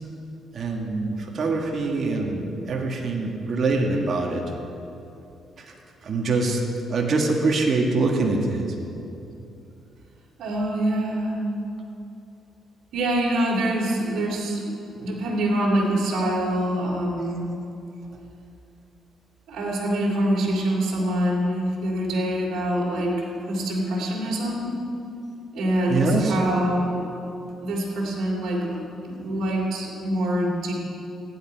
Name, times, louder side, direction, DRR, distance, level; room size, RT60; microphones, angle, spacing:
voice 1, 0.5-4.4 5.6-5.7 6.0-6.6 6.9-8.6 25.9-26.4, right 3 dB, 50° right, 0 dB, 1.6 m, -24 dB
voice 2, 10.4-11.4 12.9-17.5 19.5-24.8 25.5-27.1 27.6-30.7, right 1 dB, 70° right, -3 dB, 2.7 m, -25 dB
15.5 x 9.9 x 4.6 m, 2.7 s
cardioid pair, 90°, 0 cm